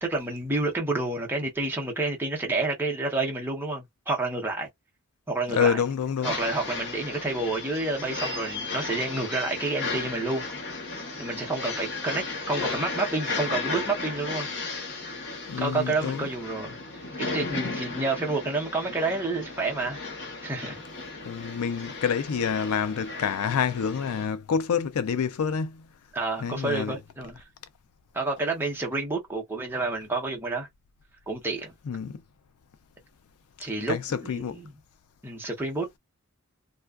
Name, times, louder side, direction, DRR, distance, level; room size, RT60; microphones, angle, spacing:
voice 1, 0.0-4.7 5.3-5.8 6.2-10.8 11.2-14.5 15.6-16.8 17.2-20.0 20.4-20.8 26.1-27.4 28.1-30.7 31.3-31.7 33.6-34.7 35.2-35.9, right 2 dB, 10° right, 0.8 m, -29 dB
voice 2, 5.5-6.3 15.5-16.3 21.2-25.9 26.4-27.0 31.9-32.2 33.9-34.0 34.3-34.6, left 6 dB, 75° left, 0.4 m, -27 dB
sound 1, 6.2-24.3, left 3 dB, 55° left, 0.9 m, -35 dB
2.4 x 2.3 x 2.3 m
head